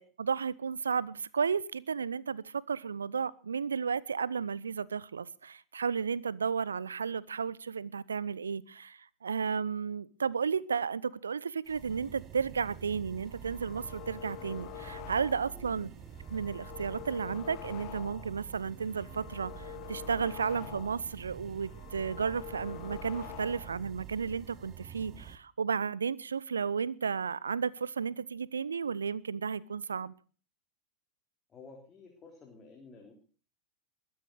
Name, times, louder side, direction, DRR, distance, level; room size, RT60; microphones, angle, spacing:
voice 1, 0.0-15.9 16.3-30.1, right 6 dB, 70° right, 0.7 m, -33 dB
sound 1, 11.6-25.4, right 10 dB, 30° right, 1.1 m, -48 dB
sound 2, 13.3-15.7 16.1-18.4 18.8-21.1 21.5-23.9, left 19 dB, 45° left, 0.7 m, -46 dB
voice 2, 15.5-15.9 31.5-33.1, left 4 dB, 20° left, 3.6 m, -52 dB
21.5 x 9.3 x 6.5 m
figure-of-eight pair, 90°, 0 cm